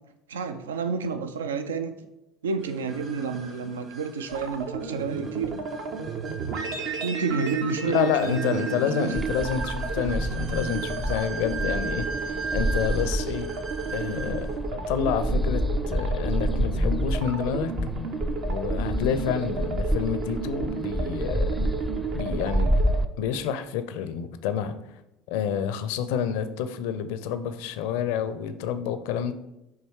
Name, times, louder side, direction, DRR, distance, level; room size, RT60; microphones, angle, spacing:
voice 1, 0.3-1.9 2.4-5.5 7.0-9.1, right 5 dB, 80° right, 9 dB, 0.3 m, -30 dB
sound 1, 2.6-14.5, right 4 dB, 45° right, 1.4 m, -38 dB
sound 2, 4.3-23.0, right 5 dB, 65° right, 0.7 m, -33 dB
voice 2, 7.9-13.5 13.9-17.7 18.4-21.7 22.1-22.7 23.2-24.8 25.3-29.3, left 8 dB, 65° left, 11 dB, 0.5 m, -29 dB
sound 3, 9.1-23.0, equal, 5° right, 0.5 m, -29 dB
7.3 x 3.1 x 4.7 m, 0.90 s
figure-of-eight pair, 65°, 0 cm